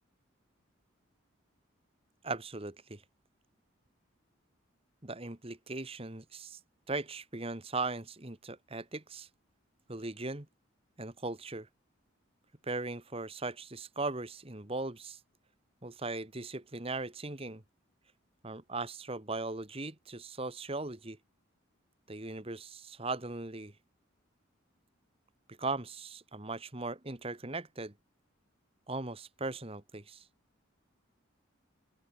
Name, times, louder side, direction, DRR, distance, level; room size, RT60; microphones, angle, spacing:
voice 1, 2.2-3.0 5.0-6.6 6.9-9.3 9.9-10.5 11.0-11.7 12.6-15.2 15.8-17.6 18.4-21.2 22.1-23.7 25.6-27.9 28.9-30.2, right 3 dB, 30° right, 1.4 m, -38 dB
open air
head